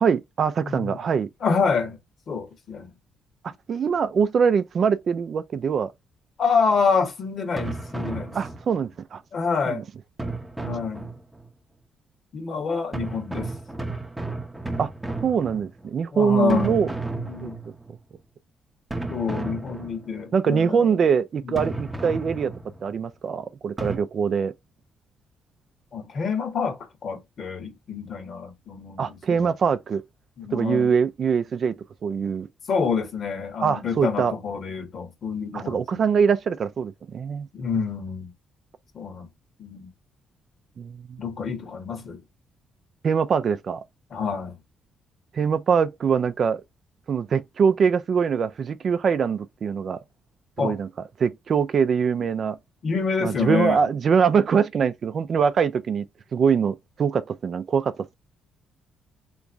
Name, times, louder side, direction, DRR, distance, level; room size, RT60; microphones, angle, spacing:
voice 1, 0.0-1.3 3.7-5.9 8.3-9.2 9.7-9.8 14.8-14.9 15.2-16.9 17.4-17.5 20.3-22.5 22.8-24.5 29.0-30.0 30.5-31.7 32.0-32.5 33.6-34.3 35.5-37.5 40.8-41.2 43.0-43.8 45.3-46.6 47.1-50.0 50.6-50.9 51.2-52.6 53.2-56.0 56.3-58.1, right 6 dB, 50° right, 0.4 m, -23 dB
voice 2, 0.6-1.0 1.4-2.0 2.3-2.9 6.4-8.3 9.3-9.8 10.6-11.1 12.3-13.5 16.1-16.8 17.1-17.6 19.1-21.0 21.4-21.7 25.9-29.5 30.4-30.9 32.7-36.0 37.5-38.3 38.9-39.3 39.6-39.9 41.2-42.2 44.1-44.5 50.6-50.8 52.8-53.9, left 5 dB, 55° left, 1.3 m, -27 dB
sound 1, 7.6-8.9 10.2-11.5 12.9-16.0 16.5-18.0 18.9-20.3 21.6-22.9 23.8-24.0, right 2 dB, 10° right, 0.7 m, -33 dB
3.5 x 3.0 x 2.6 m
cardioid pair, 90°, 0 cm